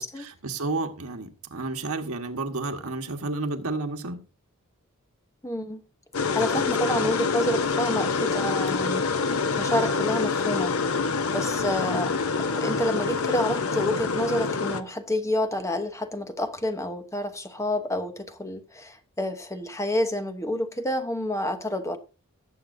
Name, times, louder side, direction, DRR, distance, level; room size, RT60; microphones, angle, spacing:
voice 1, 0.0-4.2 6.5-7.1 11.9-12.1, right 3 dB, 85° right, 1.5 m, -32 dB
voice 2, 5.4-5.8 6.3-10.7 11.3-12.1 12.6-22.0, left 1 dB, 15° left, 1.0 m, -29 dB
sound 1, 6.1-14.8, left 4 dB, 75° left, 0.9 m, -26 dB
18.5 x 7.6 x 2.7 m
head